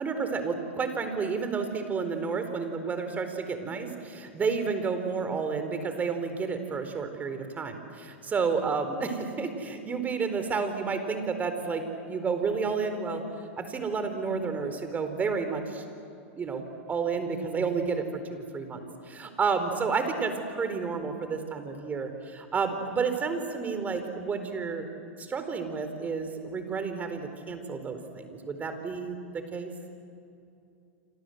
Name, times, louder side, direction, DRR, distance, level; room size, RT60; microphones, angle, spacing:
voice 1, 0.0-13.2 13.6-15.8 16.4-16.6 16.9-24.9 25.2-29.2 29.5-29.7, right 5 dB, 25° right, 8 dB, 4.2 m, -31 dB
28.0 x 26.5 x 8.0 m, 2.6 s
hypercardioid pair, 100°, 7 cm